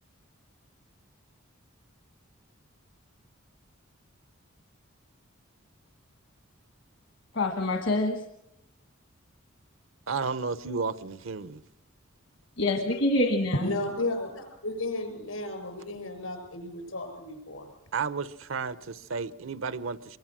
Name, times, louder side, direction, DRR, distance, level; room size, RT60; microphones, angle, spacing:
voice 1, 7.3-8.2 12.6-13.7, left 1 dB, 70° left, 1.4 m, -26 dB
voice 2, 10.1-11.6 17.9-20.2, right 5 dB, 70° right, 0.8 m, -32 dB
voice 3, 13.5-17.7, left 1 dB, 85° left, 6.5 m, -33 dB
24.5 x 22.5 x 6.2 m
head